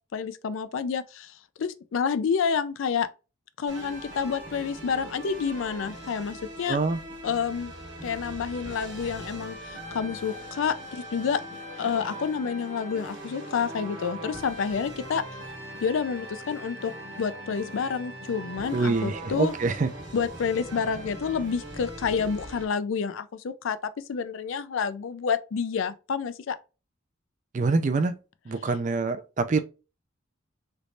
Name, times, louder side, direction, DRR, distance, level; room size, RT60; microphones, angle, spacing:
voice 1, 0.1-3.1 3.6-6.8 7.2-7.7 8.0-11.4 11.8-15.2 15.8-16.9 17.2-19.5 20.1-26.6, left 6 dB, 75° left, 0.4 m, -29 dB
sound 1, 3.7-22.7, right 1 dB, 55° right, 1.2 m, -41 dB
voice 2, 6.7-7.0 18.7-19.9 27.5-28.2 28.5-29.6, right 3 dB, 35° right, 0.4 m, -25 dB
3.3 x 3.1 x 2.6 m
head